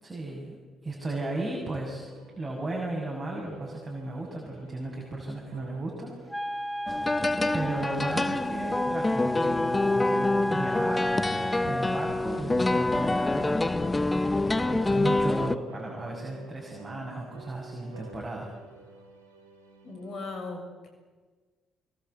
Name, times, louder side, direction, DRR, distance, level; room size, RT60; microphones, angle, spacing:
voice 1, 0.0-2.1 2.3-6.1 6.4-6.7 7.5-11.1 11.6-13.9 14.7-18.5, right 2 dB, 25° right, -1 dB, 6.5 m, -35 dB
sound 1, 1.0-15.4 15.7-20.1, right 3 dB, 90° right, 2.7 m, -50 dB
Wind instrument woodwind instrument, 6.3-11.7, equal, ahead, 1.0 m, -34 dB
sound 2, 6.9-15.6, left 2 dB, 20° left, 1.2 m, -26 dB
voice 2, 19.8-20.9, left 3 dB, 55° left, 4 dB, 6.7 m, -38 dB
24.5 x 22.0 x 8.1 m, 1.4 s
hypercardioid pair, 45°, 0 cm